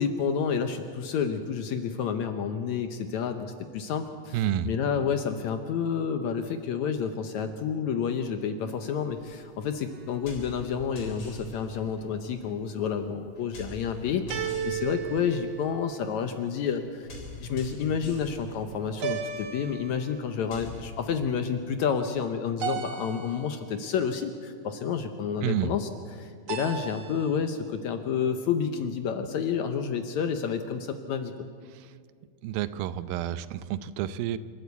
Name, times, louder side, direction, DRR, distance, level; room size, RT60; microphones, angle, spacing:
voice 1, 0.0-17.1 17.4-31.3, left 7 dB, 70° left, 7 dB, 1.9 m, -30 dB
voice 2, 4.3-4.7 25.4-25.7 31.7-31.9 32.4-34.4, right 11 dB, 85° right, 14 dB, 2.5 m, -29 dB
sound 1, 9.2-21.0, left 2 dB, 90° left, 5.8 m, -44 dB
sound 2, 9.9-10.5 14.3-16.3 19.0-20.4 22.6-23.8 26.5-27.5, right 8 dB, 60° right, 2.0 m, -36 dB
28.0 x 13.0 x 8.1 m, 2.1 s
omnidirectional pair, 4.1 m